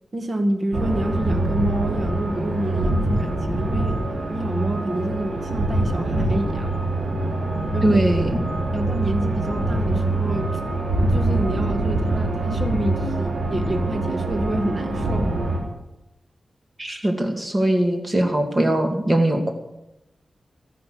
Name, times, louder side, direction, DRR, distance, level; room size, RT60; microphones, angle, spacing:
voice 1, 0.1-6.8 7.7-8.0 8.7-10.6 11.0-15.4, right 1 dB, 45° right, 6 dB, 2.0 m, -28 dB
sound 1, 0.7-15.6, right 2 dB, 80° right, 3.5 m, -24 dB
voice 2, 7.8-8.4 16.8-19.5, right 1 dB, 30° right, 4 dB, 2.4 m, -21 dB
14.0 x 11.0 x 7.7 m, 0.92 s
wide cardioid pair, 80°, 0 cm